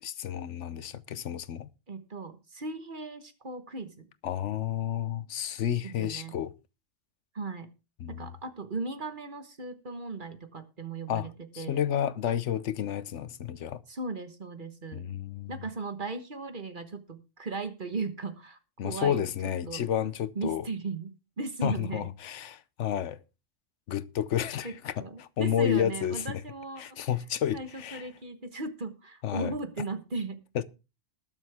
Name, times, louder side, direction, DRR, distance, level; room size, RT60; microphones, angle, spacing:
voice 1, 0.0-1.7 4.2-6.5 8.0-8.3 11.1-11.3 11.5-13.8 14.9-15.5 18.8-20.7 21.6-23.2 23.9-24.9 25.2-26.4 26.8-28.1 29.2-29.5 30.5-30.6, left 10 dB, 75° left, 1.1 m, -31 dB
voice 2, 1.9-4.1 5.8-6.4 7.3-7.7 8.1-11.8 13.9-15.1 15.5-19.8 20.3-22.1 24.6-26.8 27.5-30.4, right 3 dB, 45° right, 1.4 m, -37 dB
20.0 x 7.3 x 3.5 m
omnidirectional pair, 1.3 m